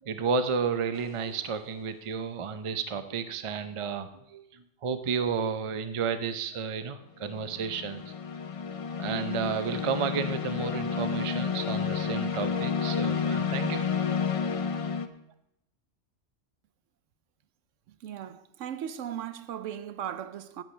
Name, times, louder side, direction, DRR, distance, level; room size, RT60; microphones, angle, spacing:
voice 1, 0.0-8.0 9.0-14.3, right 6 dB, 35° right, 0.5 m, -32 dB
sound 1, 0.9-1.3 7.2-15.1, left 6 dB, 50° left, 0.4 m, -31 dB
voice 2, 17.9-20.6, right 10 dB, 75° right, 1.0 m, -37 dB
16.5 x 10.0 x 3.2 m
omnidirectional pair, 1.3 m